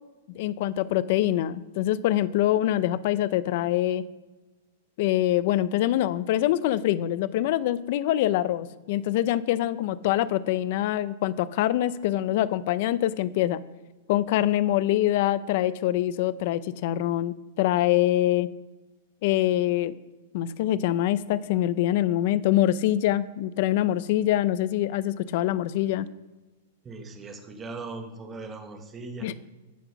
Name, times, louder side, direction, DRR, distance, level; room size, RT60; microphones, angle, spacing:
voice 1, 0.3-4.0 5.0-13.6 14.1-18.5 19.2-19.9 20.3-26.1 29.2-29.3, left 13 dB, 50° left, 16 dB, 0.6 m, -24 dB
voice 2, 26.8-29.3, right 3 dB, 15° right, 4 dB, 1.5 m, -39 dB
14.5 x 6.1 x 5.9 m, 1.2 s
supercardioid pair, 155°, 0 cm